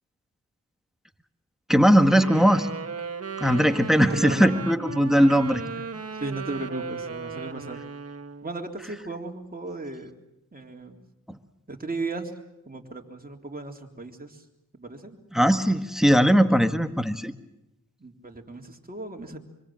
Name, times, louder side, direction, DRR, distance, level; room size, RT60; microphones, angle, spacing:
voice 1, 1.7-2.7 3.4-5.6 15.3-17.3, equal, ahead, 10 dB, 1.6 m, -19 dB
Wind instrument woodwind instrument, 2.0-8.5, right 5 dB, 45° right, 1.5 m, -36 dB
voice 2, 4.1-4.6 5.7-5.9 6.2-7.8 8.4-10.2 10.5-11.0 11.7-12.3 12.7-14.4 14.8-15.2 18.0-19.4, right 2 dB, 25° right, 2 dB, 3.6 m, -35 dB
25.5 x 25.0 x 7.6 m, 0.88 s
cardioid pair, 65°, 35 cm